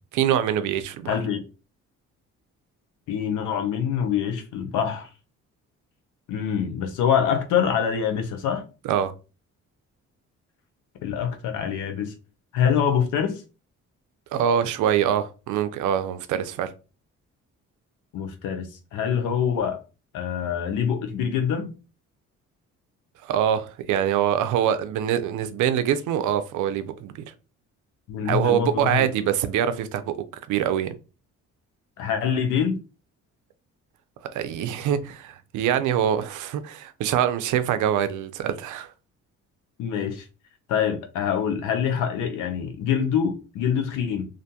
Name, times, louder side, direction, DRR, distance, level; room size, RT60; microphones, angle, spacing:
voice 1, 0.1-1.2 8.8-9.1 14.3-16.7 23.2-27.1 28.3-30.2 30.5-30.9 34.3-38.9, right 9 dB, 80° right, 0.5 m, -24 dB
voice 2, 1.1-1.4 3.1-5.1 6.3-8.6 11.0-12.1 12.5-13.4 18.1-19.8 20.1-21.7 28.1-29.0 32.0-32.8 39.8-40.2 40.7-44.3, left 8 dB, 85° left, 0.6 m, -25 dB
2.5 x 2.2 x 2.7 m
cardioid pair, 90°, 30 cm